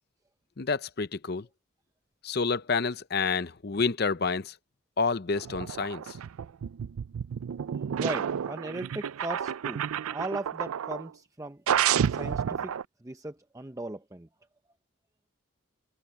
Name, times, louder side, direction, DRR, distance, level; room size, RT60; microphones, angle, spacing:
voice 1, 0.6-1.5 2.2-4.5 5.0-6.0, left 4 dB, 45° left, 0.6 m, -28 dB
sound 1, 5.4-11.1 11.7-12.8, right 8 dB, 85° right, 0.4 m, -30 dB
voice 2, 7.9-11.6 12.1-12.8 13.0-14.3, right 2 dB, 15° right, 0.6 m, -38 dB
head